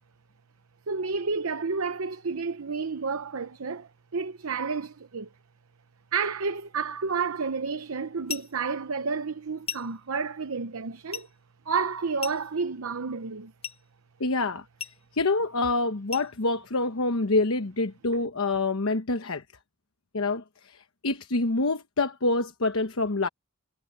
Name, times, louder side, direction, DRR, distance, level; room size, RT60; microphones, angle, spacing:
voice 1, 0.9-5.3 6.1-11.3 11.7-13.5, right 5 dB, 75° right, 0.8 m, -30 dB
sound 1, 8.3-8.6 9.7-10.0 11.1-11.3 12.2-12.6 13.6-13.9 14.8-15.1 16.1-16.4, left 8 dB, 25° left, 1.2 m, -37 dB
voice 2, 14.2-14.6 15.1-19.4 20.1-23.3, left 3 dB, 75° left, 1.1 m, -26 dB
head